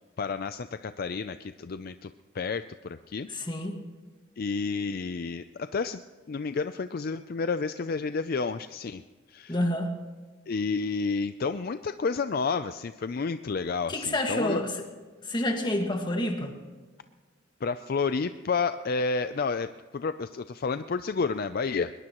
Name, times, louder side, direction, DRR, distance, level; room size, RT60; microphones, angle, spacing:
voice 1, 0.2-3.3 4.4-6.0 6.3-9.0 9.3-9.6 10.5-14.6 17.6-21.9, left 4 dB, 50° left, 11 dB, 0.4 m, -30 dB
voice 2, 3.3-3.8 9.5-9.9 13.9-14.8 15.2-16.5, left 1 dB, 25° left, 3 dB, 1.8 m, -28 dB
21.5 x 21.0 x 3.0 m, 1.4 s
head